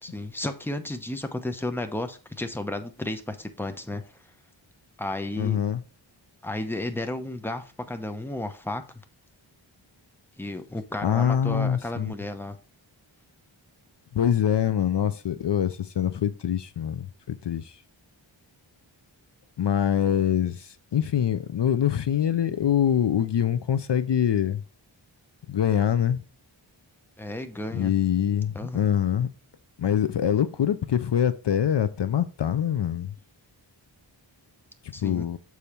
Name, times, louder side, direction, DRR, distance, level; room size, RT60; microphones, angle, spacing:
voice 1, 0.0-4.0 5.0-5.6 6.4-8.8 10.4-12.6 27.2-27.9 28.5-28.8 34.9-35.3, left 1 dB, 5° left, 0.8 m, -33 dB
voice 2, 5.4-5.8 11.0-12.1 14.1-17.8 19.6-24.6 25.5-26.2 27.7-29.3 29.8-33.1 35.0-35.4, left 9 dB, 60° left, 0.6 m, -24 dB
7.0 x 4.8 x 4.4 m
wide cardioid pair, 85°, 47 cm